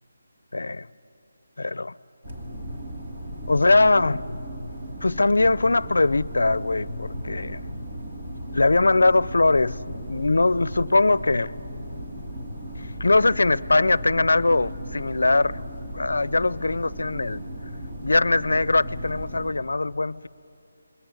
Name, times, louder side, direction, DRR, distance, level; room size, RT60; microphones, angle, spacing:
voice 1, 0.5-0.9 1.6-1.9 3.5-4.4 5.0-7.6 8.5-11.6 12.8-15.6 15.9-17.5 18.0-20.3, left 2 dB, 90° left, 0.5 m, -21 dB
sound 1, 2.2-19.5, equal, 30° right, 2.7 m, -36 dB
21.5 x 18.5 x 9.5 m
figure-of-eight pair, 175°, 0 cm